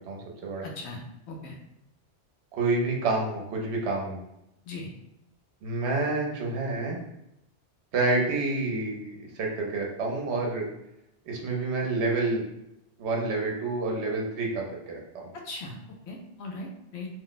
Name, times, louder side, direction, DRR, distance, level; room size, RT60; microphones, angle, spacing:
voice 1, 0.0-0.7 2.5-4.2 5.6-7.0 7.9-10.7 11.3-12.5 13.0-15.3, right 3 dB, 75° right, -1 dB, 1.0 m, -28 dB
voice 2, 0.6-1.6 4.7-4.9 15.5-15.7 16.1-16.7 16.9-17.1, left 2 dB, 75° left, 1 dB, 0.8 m, -38 dB
2.5 x 2.1 x 3.9 m, 0.83 s
omnidirectional pair, 1.2 m